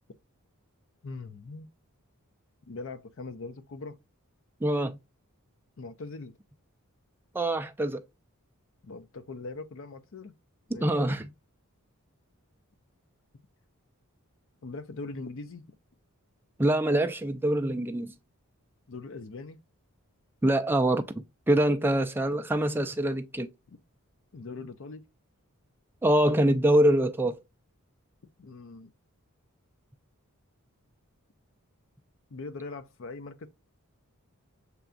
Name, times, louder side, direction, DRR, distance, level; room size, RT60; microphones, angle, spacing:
voice 1, 1.0-1.7 2.6-4.0 5.8-6.4 8.8-10.3 10.7-10.9 14.6-15.8 18.9-19.6 23.7-23.8 24.3-25.0 28.4-28.9 32.3-33.5, left 3 dB, 60° left, 0.5 m, -41 dB
voice 2, 4.6-5.0 7.3-8.0 10.8-11.2 16.6-18.1 20.4-23.5 26.0-27.4, right 1 dB, 10° right, 0.3 m, -25 dB
6.8 x 2.3 x 2.4 m
head